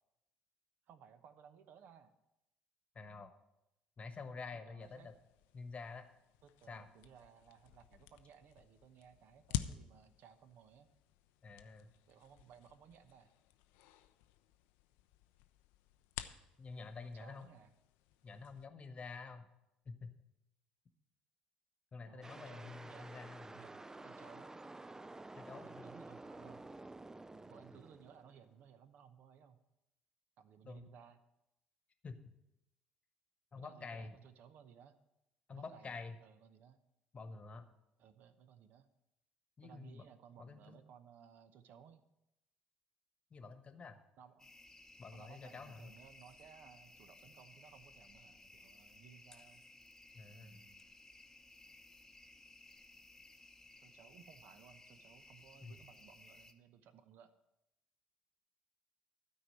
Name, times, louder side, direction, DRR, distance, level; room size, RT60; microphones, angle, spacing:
voice 1, 0.9-2.1 4.5-5.1 6.4-10.9 12.1-13.3 17.0-17.7 22.0-23.1 23.5-24.6 25.5-26.7 27.4-29.6 30.4-31.2 33.6-35.0 35.5-35.9 36.2-36.8 38.0-38.9 39.6-42.0 44.2-44.5 45.1-49.6 50.4-50.8 53.8-57.3, right 8 dB, 55° right, 11 dB, 0.8 m, -60 dB
voice 2, 2.9-3.3 4.0-5.1 5.5-6.1 6.7-6.9 11.4-11.9 16.6-17.5 18.2-19.5 19.8-20.1 21.9-23.6 25.3-25.9 30.6-30.9 32.0-32.2 33.5-34.1 35.5-36.2 37.1-37.7 39.6-40.0 40.4-40.8 43.3-44.0 45.0-45.9 50.1-50.6 55.6-55.8, left 4 dB, 35° left, 9 dB, 1.2 m, -48 dB
sound 1, 4.8-18.7, left 11 dB, 65° left, 0.5 m, -50 dB
sound 2, 22.2-28.5, right 2 dB, 15° right, 0.4 m, -51 dB
sound 3, 44.4-56.5, left 2 dB, 15° left, 0.9 m, -60 dB
12.5 x 4.8 x 7.7 m, 0.89 s
figure-of-eight pair, 50°, 4 cm